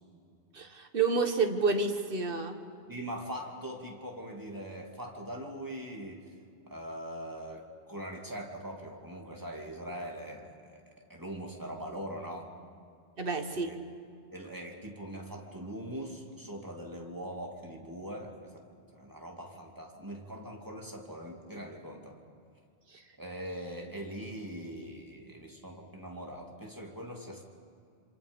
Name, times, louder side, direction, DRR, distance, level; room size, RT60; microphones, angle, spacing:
voice 1, 0.5-2.6 13.2-13.7 22.9-23.0, right 4 dB, 55° right, 6 dB, 1.7 m, -29 dB
voice 2, 2.9-6.3 6.7-10.8 11.1-12.5 13.5-13.8 14.3-18.6 18.9-22.2 23.2-27.4, equal, 15° right, 0 dB, 2.7 m, -42 dB
27.5 x 26.5 x 5.4 m, 2.4 s
omnidirectional pair, 1.1 m